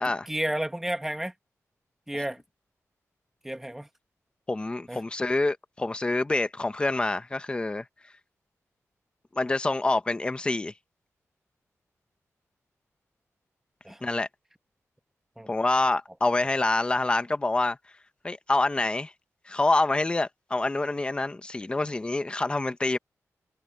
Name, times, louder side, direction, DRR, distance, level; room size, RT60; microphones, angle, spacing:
voice 1, 0.3-1.3 2.1-2.4 3.4-3.9 4.9-5.0 13.8-14.0 15.4-15.5, right 1 dB, 5° right, 1.3 m, -31 dB
voice 2, 4.5-7.8 9.3-10.7 14.0-14.3 15.5-17.8 18.2-19.1 19.5-23.0, left 2 dB, 20° left, 0.9 m, -26 dB
wide cardioid pair, 165°, 6 cm